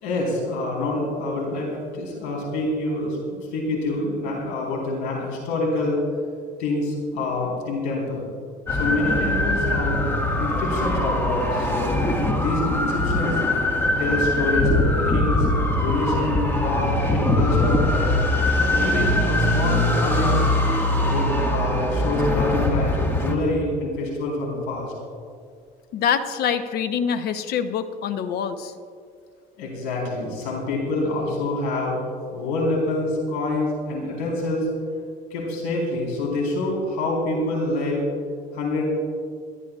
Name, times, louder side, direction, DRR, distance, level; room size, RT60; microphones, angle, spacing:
voice 1, 0.0-1.7 1.9-3.2 3.5-6.0 6.6-8.2 8.7-10.0 10.4-12.0 12.3-13.4 14.0-15.5 15.8-18.1 18.6-20.5 21.0-24.9 29.6-32.0 32.3-34.7 35.3-38.0 38.5-38.8, left 2 dB, 85° left, -2 dB, 4.2 m, -26 dB
sound 1, 8.7-23.4, left 1 dB, 15° left, 1.8 m, -22 dB
voice 2, 25.9-28.7, left 7 dB, 60° left, 9 dB, 0.9 m, -25 dB
27.5 x 13.0 x 2.4 m, 2.2 s
cardioid pair, 120°, 18 cm